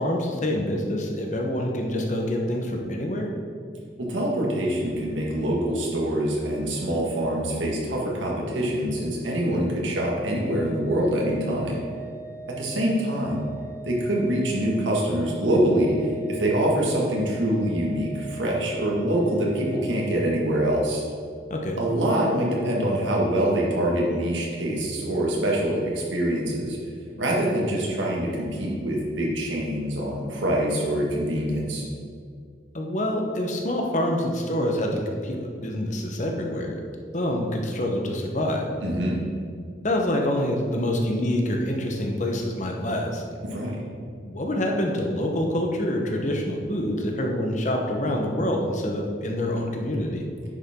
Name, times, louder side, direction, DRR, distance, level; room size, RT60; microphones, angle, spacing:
voice 1, 0.0-3.3 21.5-21.8 32.7-36.8 37.1-38.7 39.8-43.2 44.2-50.3, left 1 dB, 40° left, 1 dB, 1.0 m, -26 dB
voice 2, 4.0-11.8 12.5-13.5 13.9-21.0 21.8-26.8 27.2-31.8 38.8-39.2 43.4-43.8, right 1 dB, 85° right, -3 dB, 1.9 m, -25 dB
Organ, 10.3-21.0, right 4 dB, 10° right, 1.0 m, -41 dB
9.8 x 7.0 x 3.7 m, 2.2 s
head